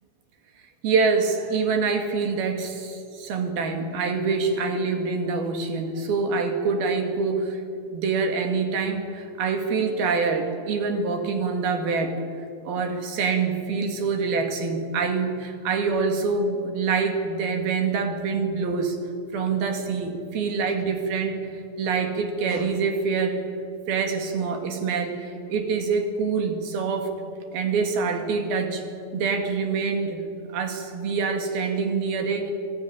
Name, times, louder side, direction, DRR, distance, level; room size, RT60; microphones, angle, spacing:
voice 1, 0.8-7.6 7.9-12.2 12.7-19.0 19.3-21.4 21.8-23.4 23.9-27.1 27.5-28.8 29.1-30.3 30.5-32.5, right 4 dB, 60° right, 5 dB, 3.8 m, -25 dB
26.0 x 16.5 x 9.7 m, 2.4 s
omnidirectional pair, 5.2 m